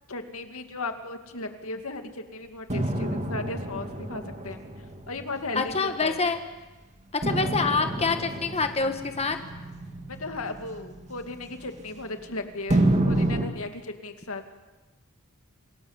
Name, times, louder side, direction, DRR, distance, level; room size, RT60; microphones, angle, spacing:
voice 1, 0.1-4.6 5.1-6.3 10.1-14.4, left 2 dB, 70° left, 6 dB, 2.4 m, -36 dB
sound 1, 2.7-6.4 7.2-12.2 12.7-13.5, right 1 dB, 30° right, 2.3 m, -29 dB
voice 2, 5.5-6.4 7.1-9.4, left 4 dB, 30° left, 7 dB, 1.5 m, -26 dB
27.5 x 19.0 x 8.1 m, 1.2 s
head